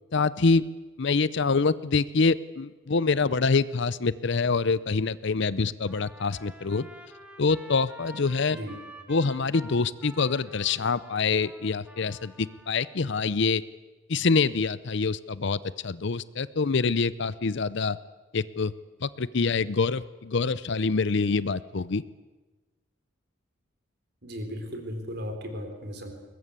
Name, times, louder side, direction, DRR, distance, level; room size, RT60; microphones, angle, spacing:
voice 1, 0.1-0.6 1.0-6.9 7.4-8.6 9.1-13.6 14.1-18.0 18.3-18.7 19.0-22.0, left 4 dB, 60° left, 17 dB, 0.6 m, -25 dB
Trumpet, 5.8-13.0, equal, 5° right, 2.3 m, -49 dB
voice 2, 24.2-26.1, equal, 55° right, 5 dB, 4.1 m, -36 dB
22.0 x 19.5 x 8.3 m, 1.2 s
head